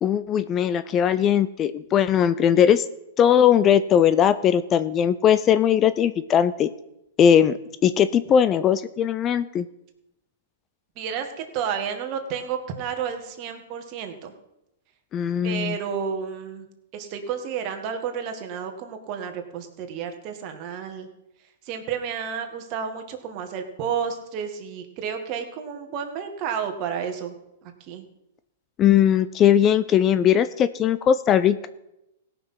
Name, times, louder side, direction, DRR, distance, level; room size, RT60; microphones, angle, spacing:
voice 1, 0.0-2.8 3.2-6.7 7.2-7.6 7.8-9.7 15.1-15.8 28.8-31.7, left 9 dB, 25° left, 14 dB, 0.4 m, -19 dB
voice 2, 11.0-14.3 15.4-16.7 16.9-21.1 21.6-27.3 27.6-28.1, right 7 dB, 40° right, 4 dB, 1.9 m, -31 dB
17.0 x 6.0 x 5.7 m, 0.87 s
hypercardioid pair, 135°, 0 cm